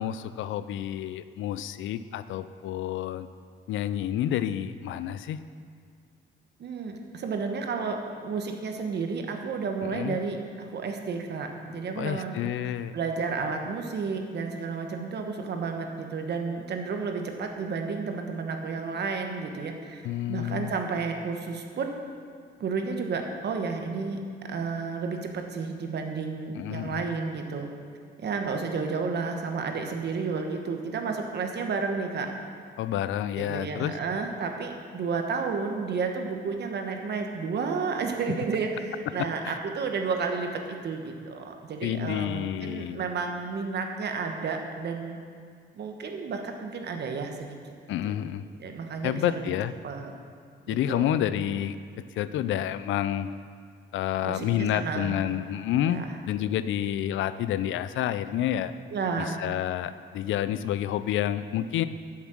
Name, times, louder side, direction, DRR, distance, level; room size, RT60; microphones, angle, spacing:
voice 1, 0.0-3.3 3.7-5.4 9.8-10.2 12.0-13.0 20.0-20.7 26.5-27.0 32.8-34.0 39.4-39.6 41.8-43.0 47.9-48.4 49.0-49.7 50.7-51.8 52.2-53.3 53.9-56.0 56.3-58.7 59.2-61.8, left 11 dB, 75° left, 13 dB, 0.4 m, -29 dB
voice 2, 6.6-12.4 12.6-20.0 20.3-22.0 22.6-24.2 24.5-27.7 28.2-32.3 33.4-45.2 45.7-47.6 48.6-49.5 49.8-50.1 50.7-51.1 54.2-55.2 55.8-56.2 58.9-59.4, right 4 dB, 55° right, 4 dB, 1.2 m, -31 dB
8.1 x 7.2 x 6.3 m, 2.1 s
cardioid pair, 90°, 20 cm